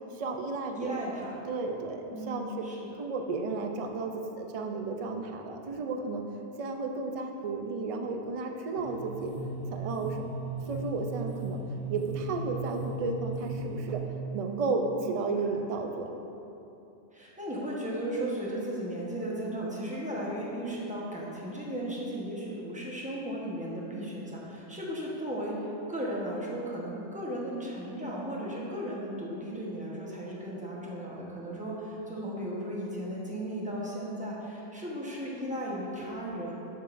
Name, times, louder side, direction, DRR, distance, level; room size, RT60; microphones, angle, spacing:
voice 1, 0.1-1.1 1.5-2.7 3.0-6.2 6.6-9.3 9.7-10.3 10.7-11.6 11.9-14.0 14.3-16.2, right 3 dB, 65° right, 3 dB, 0.3 m, -33 dB
voice 2, 0.8-1.4 2.1-2.9 15.0-15.5 17.1-36.5, right 1 dB, 5° right, -5 dB, 0.9 m, -36 dB
sound 1, 8.7-13.9, right 2 dB, 85° left, 1.8 m, -37 dB
7.2 x 7.1 x 2.5 m, 2.9 s
omnidirectional pair, 1.2 m